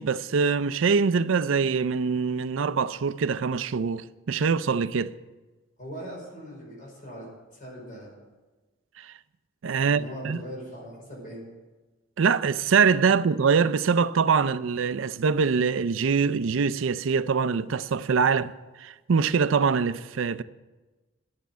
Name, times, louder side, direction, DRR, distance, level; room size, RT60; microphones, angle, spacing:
voice 1, 0.0-5.1 9.0-9.1 9.6-10.4 12.2-18.5 18.8-20.4, right 5 dB, 75° right, 0.5 m, -24 dB
voice 2, 5.8-8.1 9.8-11.4, equal, 40° left, 5.1 m, -40 dB
11.5 x 7.3 x 9.3 m
head